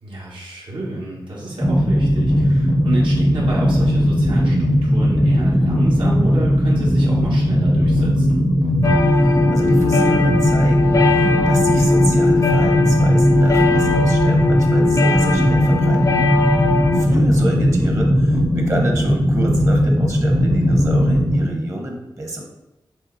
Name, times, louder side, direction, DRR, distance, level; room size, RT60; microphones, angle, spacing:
voice 1, 0.0-8.4 17.1-17.2, right 1 dB, 75° right, -5 dB, 1.9 m, -30 dB
sound 1, 1.6-21.5, equal, ahead, 0.6 m, -17 dB
sound 2, 8.8-17.0, left 4 dB, 40° left, 0.5 m, -21 dB
voice 2, 8.9-16.2 16.9-22.4, right 1 dB, 35° right, 1 dB, 1.2 m, -29 dB
7.0 x 3.3 x 4.2 m, 1.0 s
wide cardioid pair, 125°, 8 cm